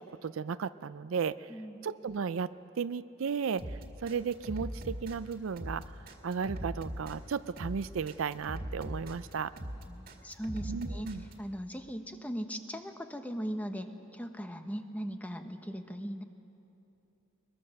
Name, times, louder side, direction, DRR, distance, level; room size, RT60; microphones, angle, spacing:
voice 1, 0.0-1.5 1.8-2.5 2.8-9.5 10.7-11.2, right 6 dB, 65° right, 14 dB, 0.4 m, -35 dB
sound 1, 3.6-11.3, equal, 45° right, 2.1 m, -40 dB
voice 2, 9.9-11.1 11.4-16.2, equal, 5° left, 6 dB, 1.0 m, -39 dB
22.5 x 21.5 x 6.5 m, 2.8 s
head